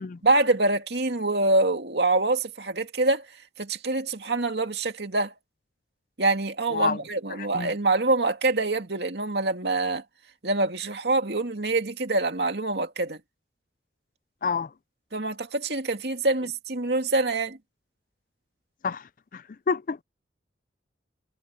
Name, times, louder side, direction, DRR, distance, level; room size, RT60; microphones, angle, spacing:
voice 1, 0.2-3.2 3.6-5.3 6.2-10.0 10.4-13.2 15.1-17.6, right 2 dB, 70° right, 2.4 m, -25 dB
voice 2, 7.3-7.7 14.4-14.7 18.8-20.0, left 5 dB, 45° left, 0.4 m, -29 dB
head